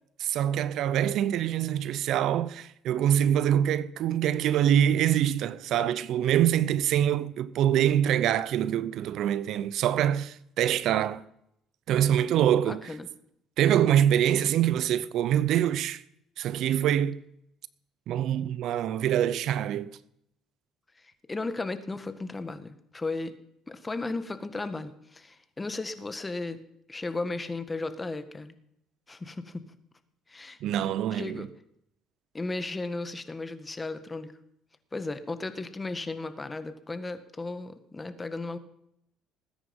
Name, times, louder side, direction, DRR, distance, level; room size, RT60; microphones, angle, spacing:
voice 1, 0.2-11.2 11.9-12.9 13.6-16.0 16.4-17.2 18.1-19.9 30.6-31.5, right 10 dB, 70° right, 0.7 m, -25 dB
voice 2, 12.6-13.1 21.0-23.3 23.7-26.6 26.9-28.5 29.1-29.6 30.3-30.6 31.1-31.5 32.3-34.3 34.9-38.6, left 3 dB, 20° left, 1.7 m, -35 dB
20.0 x 9.7 x 5.4 m
supercardioid pair, 80°, 0 cm